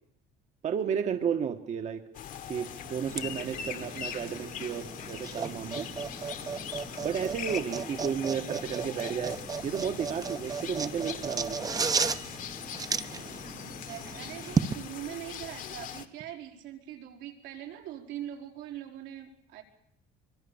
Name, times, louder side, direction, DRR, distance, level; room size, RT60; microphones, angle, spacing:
voice 1, 0.6-2.0 2.5-5.9 7.0-9.4 9.6-11.9, right 7 dB, 40° right, 8 dB, 1.4 m, -33 dB
sound 1, 2.1-16.1, left 9 dB, 50° left, 1.6 m, -41 dB
sound 2, 3.1-14.7, right 5 dB, 20° right, 0.9 m, -35 dB
voice 2, 13.6-19.6, right 11 dB, 90° right, 2 dB, 5.0 m, -42 dB
24.5 x 23.5 x 7.1 m, 0.72 s
cardioid pair, 155°, 17 cm